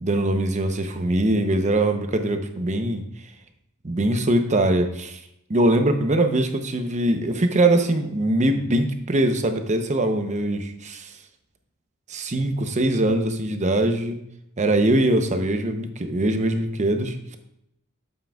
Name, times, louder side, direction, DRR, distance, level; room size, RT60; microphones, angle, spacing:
voice 1, 0.0-3.0 3.8-5.2 5.5-11.1 12.1-14.2 14.6-17.4, right 1 dB, 35° right, 7 dB, 0.7 m, -22 dB
9.0 x 7.5 x 2.3 m, 0.80 s
head